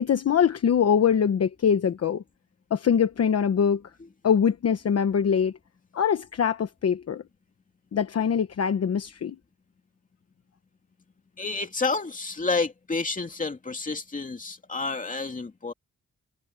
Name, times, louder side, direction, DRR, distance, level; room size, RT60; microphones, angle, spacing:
voice 1, 0.0-2.2 2.7-3.8 4.2-5.5 5.9-7.2 7.9-9.4, left 7 dB, 55° left, 1.0 m, -23 dB
voice 2, 11.4-15.7, left 3 dB, 25° left, 2.6 m, -29 dB
wide cardioid pair, 155°, 30 cm